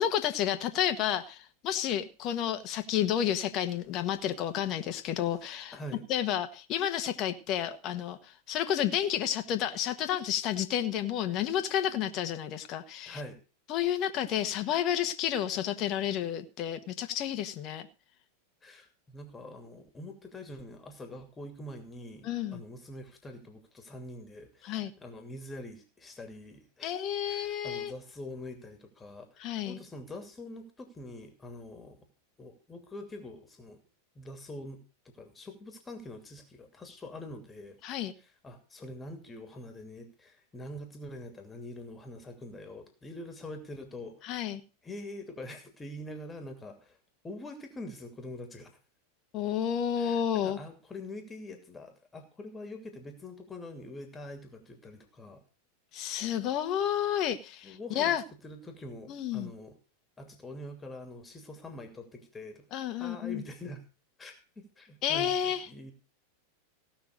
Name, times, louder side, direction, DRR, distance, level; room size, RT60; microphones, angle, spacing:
voice 1, 0.0-5.8 6.1-13.2 13.7-17.9 22.2-22.6 24.6-24.9 26.8-27.9 29.4-29.8 37.8-38.1 44.2-44.6 49.3-50.6 55.9-58.2 59.1-59.5 62.7-63.4 65.0-65.7, left 10 dB, 45° left, 1.4 m, -31 dB
voice 2, 5.7-6.1 13.1-13.4 18.6-32.0 32.4-33.8 34.1-34.8 35.2-37.8 38.2-44.4 44.8-47.0 47.2-48.8 50.0-55.4 57.6-58.2 58.4-59.8 60.2-62.7 62.9-63.8 64.2-65.9, left 1 dB, 15° left, 2.7 m, -44 dB
17.0 x 6.0 x 6.5 m
hypercardioid pair, 95°, 0 cm